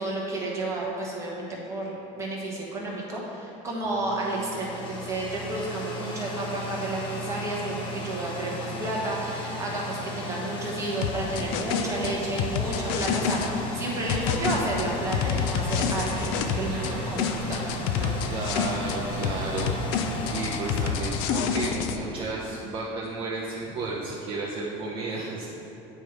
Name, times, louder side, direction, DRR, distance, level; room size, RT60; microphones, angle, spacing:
voice 1, 0.0-17.6 18.0-18.1, right 2 dB, 20° right, -4 dB, 1.2 m, -31 dB
sound 1, 3.8-22.0, left 1 dB, 35° left, 0.9 m, -36 dB
sound 2, 11.0-13.5 14.1-16.9 17.2-19.0 19.2-22.0, left 7 dB, 80° left, 0.5 m, -28 dB
sound 3, 14.0-19.5, right 3 dB, 70° right, 1.1 m, -44 dB
voice 2, 18.3-19.7 20.3-25.5, right 3 dB, 35° right, -5 dB, 0.7 m, -32 dB
8.7 x 3.2 x 4.8 m, 3.0 s
cardioid pair, 155°, 16 cm